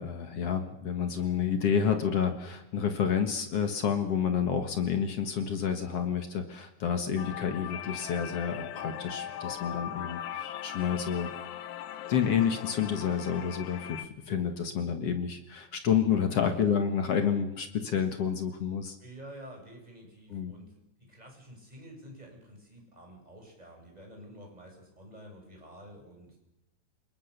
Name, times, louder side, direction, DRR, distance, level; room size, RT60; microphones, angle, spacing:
voice 1, 0.0-11.3 12.1-19.0 20.3-20.5, left 7 dB, 55° left, 7 dB, 1.9 m, -29 dB
sound 1, 7.2-14.1, left 10 dB, 70° left, 1.9 m, -39 dB
voice 2, 19.0-26.4, equal, 10° right, 1 dB, 7.3 m, -49 dB
29.0 x 20.5 x 6.7 m, 0.84 s
omnidirectional pair, 4.6 m